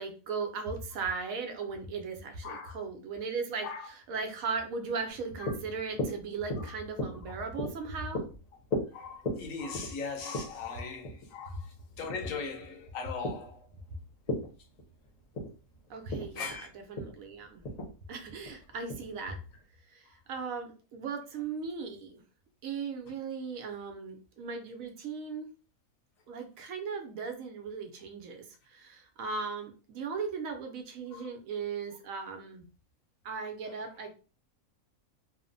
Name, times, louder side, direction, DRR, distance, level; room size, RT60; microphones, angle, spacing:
voice 1, 0.0-8.2 15.9-17.6 18.1-19.4 19.9-22.2 22.6-25.5 26.3-32.7 33.2-34.1, right 5 dB, 70° right, 1.0 m, -37 dB
voice 2, 2.4-2.8 3.6-3.9 5.4-5.5 6.6-6.7 8.9-13.7 16.3-16.7 31.1-31.3, left 5 dB, 70° left, 1.0 m, -39 dB
sound 1, 5.1-19.6, left 1 dB, 35° left, 0.7 m, -39 dB
2.9 x 2.0 x 2.5 m
omnidirectional pair, 1.5 m